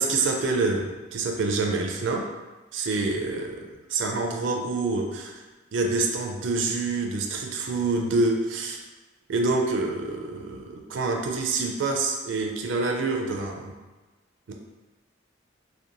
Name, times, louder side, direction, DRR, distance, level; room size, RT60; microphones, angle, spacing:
voice 1, 0.0-2.3 2.7-5.4 5.7-8.8 9.3-13.8 14.5-14.6, right 3 dB, 85° right, 2 dB, 0.4 m, -27 dB
2.8 x 2.1 x 2.5 m, 1.2 s
head